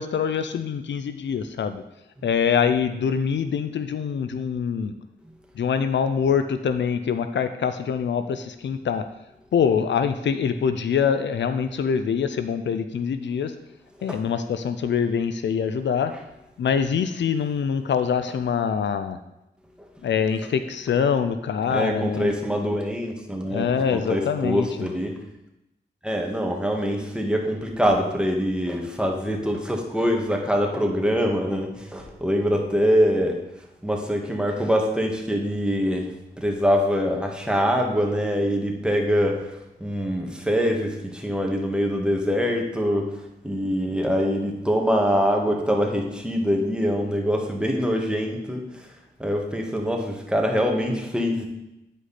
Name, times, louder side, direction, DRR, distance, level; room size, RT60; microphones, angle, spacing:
voice 1, 0.0-1.8 2.2-4.9 5.6-9.0 9.5-13.5 14.0-16.1 16.6-19.2 20.0-22.3 23.5-24.9, left 7 dB, 85° left, 10 dB, 0.5 m, -24 dB
voice 2, 21.7-25.2 26.0-33.4 33.8-36.1 36.4-39.5 39.8-43.1 43.4-48.9 49.2-51.5, equal, 5° right, 1 dB, 1.8 m, -24 dB
9.5 x 5.1 x 4.2 m, 0.90 s
cardioid pair, 40°, 18 cm